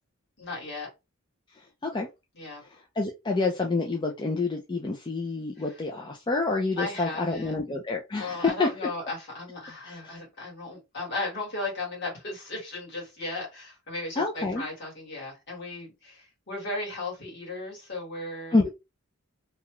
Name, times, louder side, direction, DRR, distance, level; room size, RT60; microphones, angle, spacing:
voice 1, 0.4-0.9 2.3-2.6 6.8-7.5 8.2-18.5, left 2 dB, 55° left, 1.7 m, -36 dB
voice 2, 1.5-2.1 2.7-8.7 9.8-10.0 14.2-14.6 18.5-18.7, left 3 dB, 20° left, 0.4 m, -28 dB
2.9 x 2.3 x 2.9 m
head